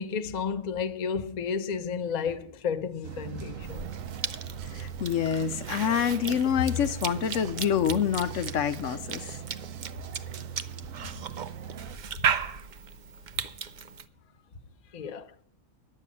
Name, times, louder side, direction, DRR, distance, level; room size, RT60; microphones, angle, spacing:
voice 1, 0.0-3.9 14.9-15.3, left 6 dB, 40° left, 0.6 m, -32 dB
sound 1, 3.0-12.0, right 8 dB, 85° right, 1.1 m, -40 dB
Cough / Chewing mastication, 3.6-14.1, right 7 dB, 50° right, 0.6 m, -36 dB
voice 2, 4.7-9.2, left 8 dB, 75° left, 1.0 m, -26 dB
11.0 x 7.5 x 8.4 m
omnidirectional pair, 1.4 m